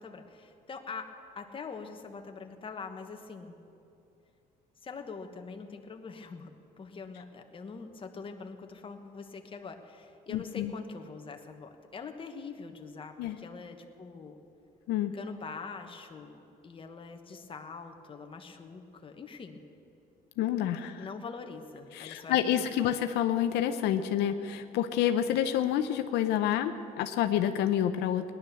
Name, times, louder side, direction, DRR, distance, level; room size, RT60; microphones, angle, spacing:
voice 1, 0.0-3.6 4.8-14.4 15.1-19.6 20.8-22.9, left 4 dB, 30° left, 5 dB, 1.3 m, -44 dB
voice 2, 10.3-10.7 13.2-13.4 14.9-15.1 20.4-21.1 21.9-28.3, left 10 dB, 85° left, 8 dB, 0.7 m, -28 dB
18.0 x 11.0 x 7.0 m, 2.7 s
cardioid pair, 110°, 17 cm